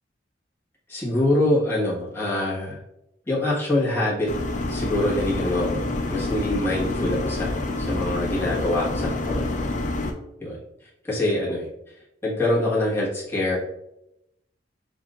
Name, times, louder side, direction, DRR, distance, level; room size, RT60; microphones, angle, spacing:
voice 1, 0.9-2.8 3.3-4.3 4.7-9.7 10.4-11.7 12.2-13.6, left 1 dB, 15° left, -7 dB, 1.5 m, -25 dB
sound 1, 4.3-10.1, left 2 dB, 45° left, 0.6 m, -27 dB
6.9 x 2.6 x 2.4 m, 0.85 s
head